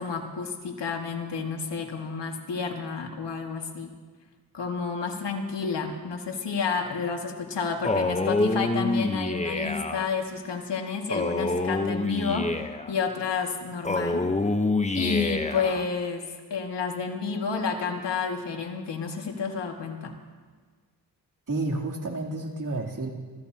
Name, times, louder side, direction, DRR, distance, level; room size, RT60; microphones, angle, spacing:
voice 1, 0.0-3.9 4.5-14.2 14.9-20.1, left 5 dB, 70° left, 2 dB, 2.1 m, -30 dB
Male speech man speaking, 7.8-10.1 11.1-12.9 13.8-15.8, left 2 dB, 15° left, 0.9 m, -27 dB
voice 2, 21.5-23.1, right 2 dB, 45° right, -1 dB, 3.2 m, -30 dB
27.5 x 14.5 x 2.9 m, 1.5 s
cardioid pair, 50°, 43 cm